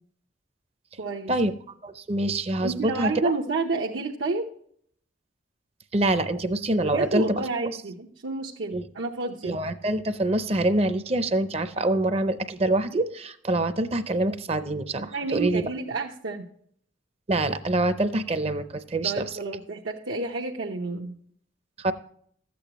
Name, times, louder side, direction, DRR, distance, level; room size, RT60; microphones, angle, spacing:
voice 1, 1.0-1.3 2.6-4.5 6.8-9.6 15.1-16.5 19.0-21.1, right 3 dB, 85° right, -2 dB, 0.9 m, -30 dB
voice 2, 1.8-3.3 5.9-7.4 8.7-8.8 9.4-15.7 17.3-19.2 21.8-21.9, right 2 dB, 30° right, 11 dB, 0.5 m, -25 dB
13.0 x 8.5 x 3.0 m, 0.63 s
head